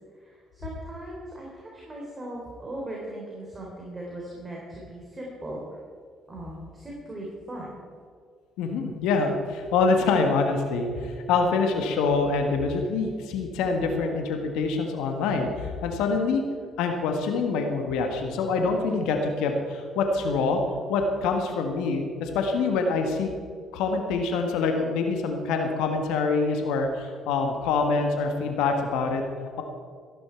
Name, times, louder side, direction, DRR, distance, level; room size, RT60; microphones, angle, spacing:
voice 1, 0.1-5.8 6.3-7.8, right 1 dB, 25° right, -3 dB, 3.9 m, -39 dB
voice 2, 8.6-16.4 16.8-20.6 20.9-23.3 23.7-29.2, left 4 dB, 75° left, 4 dB, 1.6 m, -25 dB
15.0 x 11.5 x 4.6 m, 2.1 s
hypercardioid pair, 55°, 0 cm